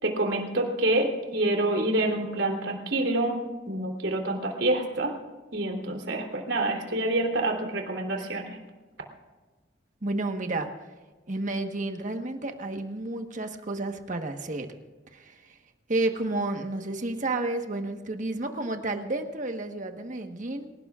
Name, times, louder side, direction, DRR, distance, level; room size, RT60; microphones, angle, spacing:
voice 1, 0.0-5.1 5.5-8.6, right 2 dB, 85° right, 2 dB, 3.3 m, -27 dB
voice 2, 10.0-10.9 11.3-14.7 15.1-15.6 15.9-20.7, right 2 dB, 45° right, 5 dB, 1.3 m, -31 dB
27.0 x 17.5 x 2.5 m, 1.3 s
head